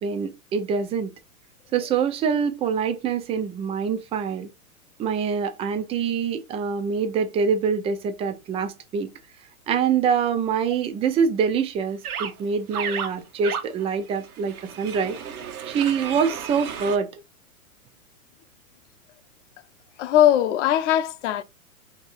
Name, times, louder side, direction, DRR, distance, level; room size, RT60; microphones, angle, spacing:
voice 1, 0.0-1.1 1.7-4.5 5.0-9.1 9.7-15.2 15.7-17.2, right 6 dB, 15° right, 0.4 m, -25 dB
sound 1, 12.0-12.3 12.7-17.0, right 7 dB, 75° right, 1.2 m, -33 dB
voice 2, 20.0-21.4, left 11 dB, 55° left, 0.8 m, -20 dB
3.3 x 2.9 x 4.7 m
hypercardioid pair, 115°, 43 cm